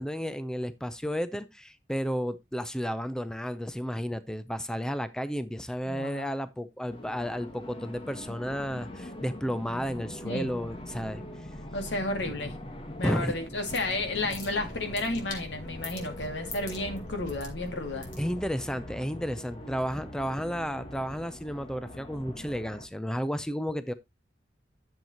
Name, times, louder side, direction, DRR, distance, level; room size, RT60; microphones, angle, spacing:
voice 1, 0.0-11.2 13.0-13.3 18.2-23.9, equal, 5° left, 0.5 m, -32 dB
voice 2, 5.9-6.3 10.2-10.5 11.7-12.6 13.0-18.1, left 2 dB, 80° left, 2.2 m, -32 dB
sound 1, 6.9-22.9, left 1 dB, 30° left, 1.2 m, -43 dB
sound 2, 13.2-18.6, left 1 dB, 50° left, 3.3 m, -44 dB
10.5 x 7.4 x 2.8 m
head